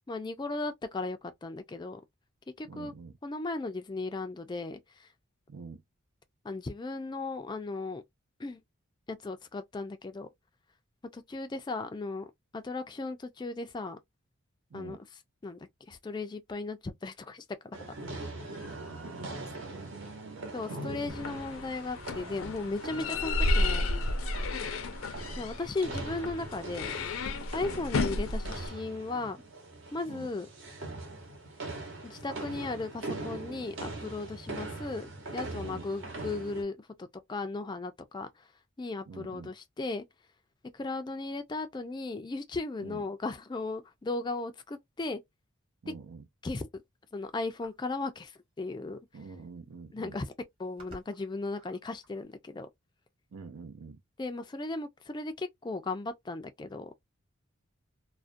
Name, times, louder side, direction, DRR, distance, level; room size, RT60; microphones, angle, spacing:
voice 1, 0.1-2.0 2.6-2.9 3.2-5.1 6.4-8.0 8.4-8.6 9.1-10.3 11.1-14.0 14.7-15.0 15.4-17.4 20.5-23.9 25.4-26.9 27.5-29.4 29.9-30.5 32.0-38.5 38.8-40.0 40.7-45.2 46.4-46.7 47.1-49.0 49.9-50.3 50.6-52.7 54.2-56.9, left 3 dB, 20° left, 0.3 m, -36 dB
voice 2, 2.6-3.2 5.5-5.8 14.7-15.0 18.6-20.9 27.6-27.8 30.1-30.3 35.6-35.9 39.1-39.5 42.8-43.0 45.8-46.3 49.1-50.2 53.3-54.0, right 4 dB, 75° right, 0.5 m, -46 dB
sound 1, 17.7-36.6, right 2 dB, 60° right, 0.9 m, -42 dB
sound 2, 21.1-28.7, left 2 dB, 75° left, 0.5 m, -32 dB
sound 3, 47.6-48.0 49.1-49.2 49.5-49.8 50.4-52.2, right 1 dB, 25° right, 1.0 m, -54 dB
2.3 x 2.1 x 2.5 m
head